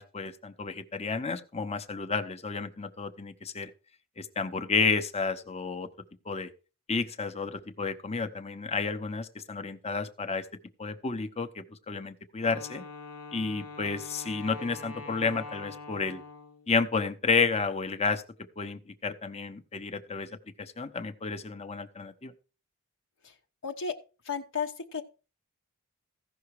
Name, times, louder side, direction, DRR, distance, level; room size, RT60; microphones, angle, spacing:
voice 1, 0.0-3.7 4.2-5.9 6.2-6.5 6.9-10.5 10.8-12.8 13.3-16.2 16.7-18.2 18.6-20.3 20.6-22.3, left 4 dB, 30° left, 8 dB, 0.8 m, -31 dB
Wind instrument woodwind instrument, 12.4-16.7, left 3 dB, 85° left, 1.2 m, -44 dB
voice 2, 23.6-24.0 24.2-25.0, left 6 dB, 60° left, 3 dB, 0.9 m, -33 dB
15.5 x 5.8 x 4.8 m, 0.34 s
head